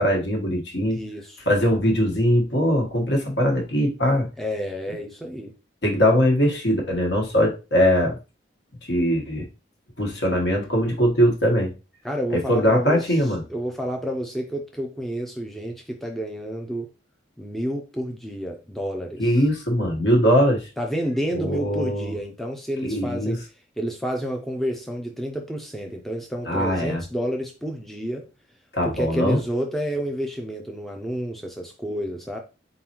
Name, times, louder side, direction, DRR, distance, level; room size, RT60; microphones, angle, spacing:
voice 1, 0.0-1.0 1.5-4.3 5.8-8.2 8.9-9.5 10.0-11.7 12.3-13.4 19.2-20.6 21.3-22.1 22.8-23.4 26.5-27.0 28.7-29.4, equal, 60° left, 1.3 m, -21 dB
voice 2, 0.9-1.4 4.4-5.5 12.0-16.9 17.4-19.4 20.8-23.4 23.8-28.3 28.8-32.4, equal, ahead, 0.5 m, -30 dB
4.1 x 3.9 x 2.9 m
head